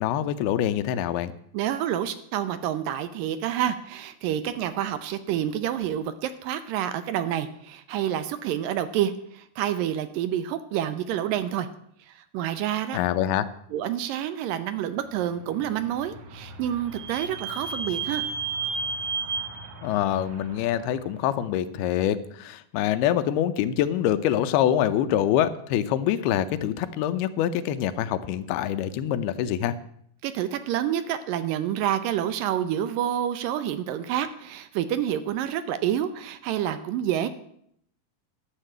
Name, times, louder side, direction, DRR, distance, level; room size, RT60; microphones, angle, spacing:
voice 1, 0.0-1.3 12.9-13.5 19.8-29.7, left 11 dB, 90° left, 11 dB, 2.7 m, -25 dB
voice 2, 1.5-11.7 12.1-13.0 13.7-18.3 30.2-37.3, right 10 dB, 75° right, 12 dB, 2.2 m, -28 dB
Vehicle / Squeak, 15.5-21.1, right 4 dB, 55° right, 2.0 m, -34 dB
11.5 x 7.4 x 9.0 m, 0.69 s
omnidirectional pair, 4.4 m